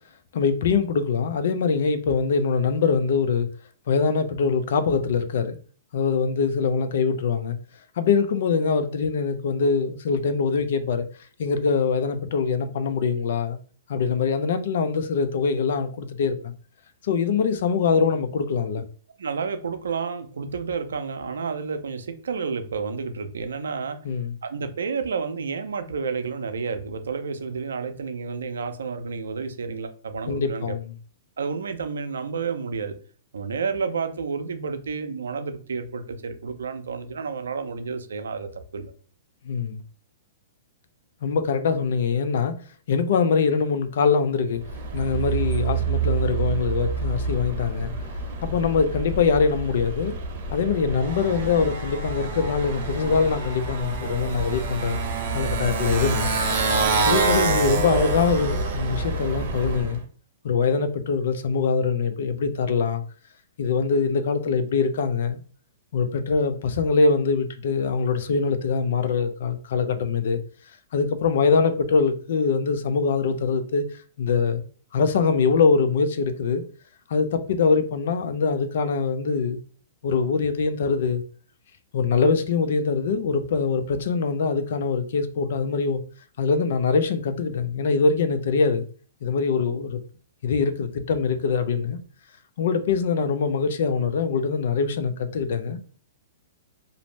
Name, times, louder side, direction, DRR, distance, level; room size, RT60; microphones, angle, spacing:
voice 1, 0.3-3.5 3.9-5.6 5.9-7.6 8.0-11.1 11.4-13.6 13.9-16.5 17.0-18.8 24.0-24.4 30.3-30.9 39.4-39.8 41.2-42.6 42.9-44.6 44.9-47.9 48.4-50.2 50.5-55.0 55.3-56.3 57.0-60.0 60.4-63.0 63.6-65.4 65.9-70.4 70.9-74.6 74.9-76.6 77.1-79.6 80.0-81.2 81.9-86.0 86.4-88.9 89.2-90.0 90.4-92.0 92.6-95.8, left 5 dB, 65° left, 0.4 m, -23 dB
voice 2, 19.2-24.0 24.4-30.7 31.4-32.9 33.3-38.9, right 5 dB, 80° right, 0.4 m, -30 dB
Motorcycle, 44.6-60.0, right 4 dB, 50° right, 0.7 m, -27 dB
2.5 x 2.0 x 3.1 m
hypercardioid pair, 125°, 0 cm